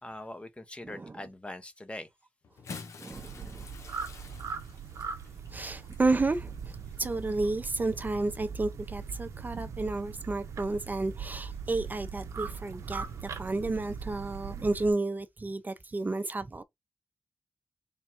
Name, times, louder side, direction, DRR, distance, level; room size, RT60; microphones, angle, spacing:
voice 1, 0.0-2.1, left 1 dB, 20° left, 0.7 m, -42 dB
Bathtub (filling or washing) / Splash splatter, 2.4-8.1 9.0-9.2 10.6-10.7, left 4 dB, 75° left, 0.8 m, -49 dB
voice 2, 3.0-3.7 5.5-16.6, right 2 dB, 35° right, 0.5 m, -31 dB
sound 1, 3.1-14.9, right 6 dB, 90° right, 0.5 m, -40 dB
3.5 x 2.2 x 4.4 m
cardioid pair, 55°, 5 cm